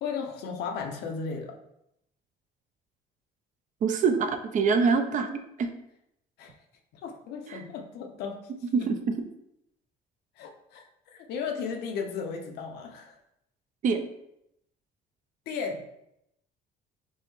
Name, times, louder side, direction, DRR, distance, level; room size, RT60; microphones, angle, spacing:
voice 1, 0.0-1.5 5.1-5.2 6.4-6.5 6.9-8.4 8.8-8.9 10.4-13.2 15.5-15.9, left 5 dB, 80° left, 3 dB, 0.6 m, -35 dB
voice 2, 3.8-5.7 7.5-7.6 8.7-9.1 13.8-14.0, right 5 dB, 50° right, 8 dB, 0.5 m, -25 dB
5.4 x 2.1 x 3.1 m, 0.79 s
cardioid pair, 110°, 17 cm